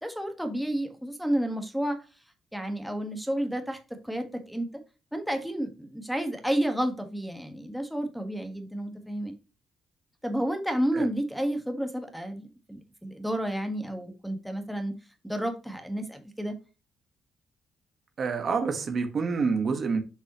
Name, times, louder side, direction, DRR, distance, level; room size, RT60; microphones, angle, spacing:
voice 1, 0.0-2.0 2.5-3.8 4.0-4.7 5.1-9.3 10.2-14.9 15.2-16.5, right 1 dB, ahead, 1.6 m, -31 dB
voice 2, 18.2-20.0, right 5 dB, 50° right, 1.5 m, -27 dB
7.0 x 5.4 x 3.0 m
cardioid pair, 90°, 0 cm